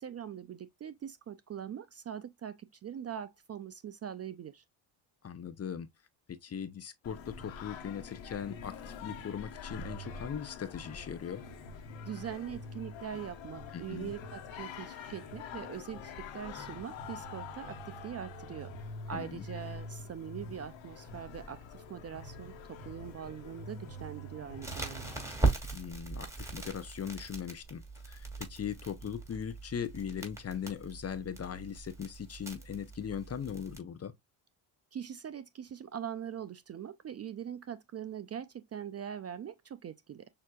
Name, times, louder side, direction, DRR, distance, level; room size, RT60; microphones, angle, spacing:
voice 1, 0.0-4.6 12.0-18.7 19.1-25.1 34.9-40.3, right 9 dB, 35° right, 0.4 m, -42 dB
voice 2, 5.2-5.9 6.3-11.4 13.7-14.1 19.1-19.4 25.7-34.1, left 8 dB, 30° left, 0.7 m, -39 dB
Singing, 7.0-25.3, left 3 dB, 65° left, 1.3 m, -45 dB
Crackle, 24.6-33.8, right 3 dB, 5° right, 2.4 m, -38 dB
6.4 x 2.8 x 2.3 m
supercardioid pair, 75°, 48 cm